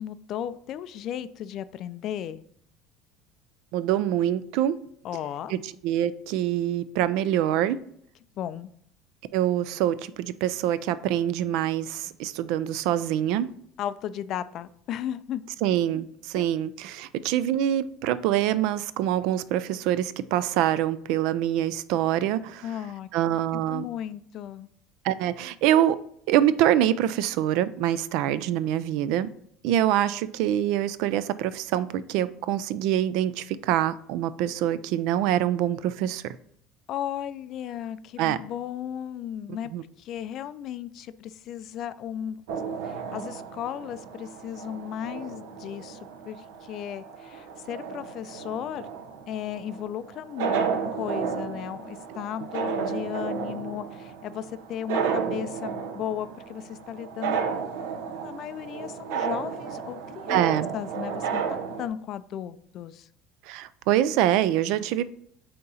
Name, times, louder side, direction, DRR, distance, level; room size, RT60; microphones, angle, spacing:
voice 1, 0.0-2.4 5.0-5.5 8.4-8.7 13.8-15.5 16.3-16.5 22.6-23.1 23.7-24.7 36.9-39.7 40.0-42.4 42.8-46.0 46.3-48.9 49.3-50.6 51.0-57.8 58.2-60.5 60.7-63.1, left 10 dB, 45° left, 0.3 m, -35 dB
voice 2, 3.7-4.8 5.5-7.8 9.3-13.5 15.6-22.7 23.1-23.9 25.0-26.0 26.3-29.3 29.6-36.4 38.2-38.4 39.7-39.8 60.3-60.7 63.5-65.0, right 11 dB, 65° right, 0.3 m, -25 dB
sound 1, 42.5-61.9, right 6 dB, 85° right, 0.7 m, -33 dB
8.4 x 2.9 x 4.1 m
cardioid pair, 140°, 0 cm